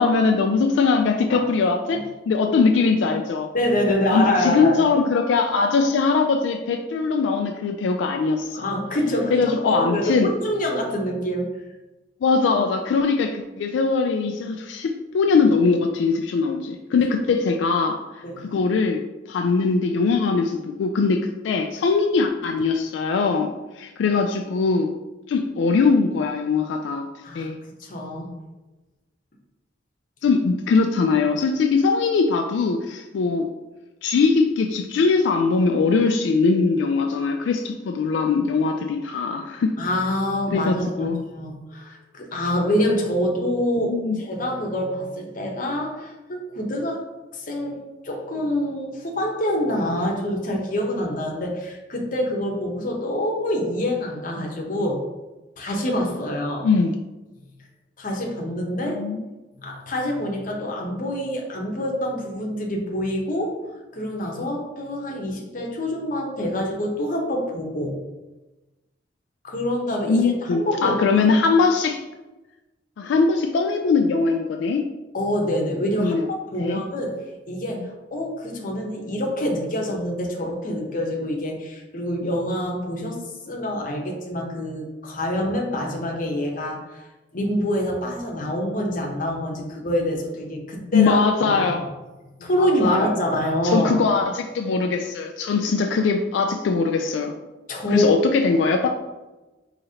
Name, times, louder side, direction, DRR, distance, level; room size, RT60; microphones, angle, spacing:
voice 1, 0.0-3.5 4.1-8.7 9.3-10.3 12.2-19.0 19.3-24.9 25.3-27.1 27.3-27.6 30.2-33.5 34.0-39.8 40.5-41.2 43.9-44.2 56.6-57.0 58.9-59.2 70.1-72.0 73.0-74.9 76.0-76.3 76.6-76.8 90.9-91.9 92.6-93.1 93.6-97.4 97.9-98.9, left 4 dB, 85° left, 4 dB, 0.3 m, -21 dB
voice 2, 3.5-4.8 8.5-11.5 18.2-18.5 27.2-27.5 27.8-28.3 39.8-47.0 47.3-55.0 55.6-56.7 58.0-59.0 59.6-63.5 63.9-67.9 69.4-71.0 75.1-77.2 77.5-87.0 87.3-91.2 91.5-91.6 92.4-93.9 97.7-98.1, left 1 dB, 45° left, 0 dB, 0.8 m, -26 dB
4.9 x 2.9 x 2.8 m, 1.1 s
head